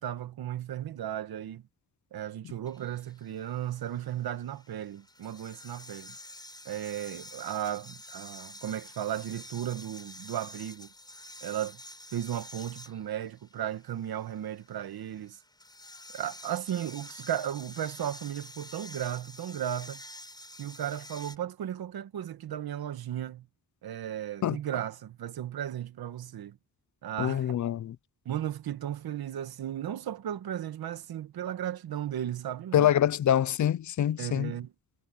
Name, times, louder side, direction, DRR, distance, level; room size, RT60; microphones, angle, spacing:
voice 1, 0.0-1.6 2.1-6.2 6.7-10.9 11.4-11.8 12.1-15.4 16.1-20.0 20.6-23.5 23.8-26.6 27.0-27.5 28.3-32.9 34.2-34.7, right 11 dB, 90° right, 1.6 m, -35 dB
sound 1, 2.7-21.4, left 1 dB, 10° left, 6.0 m, -49 dB
voice 2, 27.2-28.0 32.7-34.5, left 10 dB, 55° left, 0.6 m, -25 dB
wide cardioid pair, 130°, 36 cm